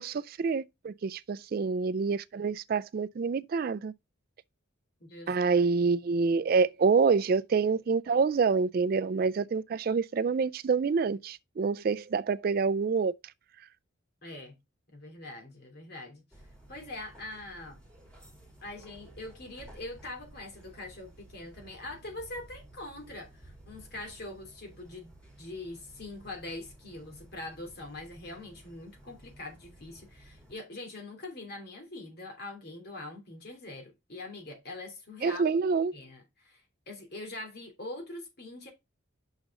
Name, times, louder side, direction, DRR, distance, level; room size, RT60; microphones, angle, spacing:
voice 1, 0.0-3.9 5.3-13.1 35.2-35.9, right 5 dB, 45° right, 0.3 m, -27 dB
voice 2, 5.0-5.3 14.2-14.6 14.9-16.2 16.7-17.8 18.6-35.4 35.9-38.7, left 2 dB, 50° left, 3.0 m, -43 dB
sound 1, 16.3-30.5, right 1 dB, 5° left, 3.0 m, -54 dB
6.4 x 6.2 x 3.7 m
head